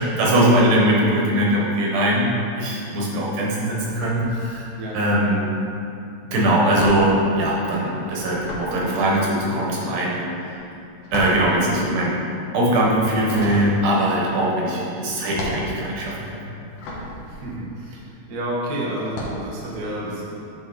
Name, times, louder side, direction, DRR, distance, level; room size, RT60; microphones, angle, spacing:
voice 1, 0.0-2.3 2.6-4.7 4.9-5.5 6.3-10.2 11.1-12.2 12.5-16.1, right 1 dB, 75° right, -4 dB, 2.9 m, -21 dB
sound 1, 3.7-5.0 5.2-18.4 19.0-19.5, left 1 dB, 80° left, 2.6 m, -35 dB
voice 2, 17.3-20.5, right 1 dB, 55° right, -4 dB, 1.0 m, -30 dB
9.7 x 5.2 x 4.1 m, 2.7 s
omnidirectional pair, 3.7 m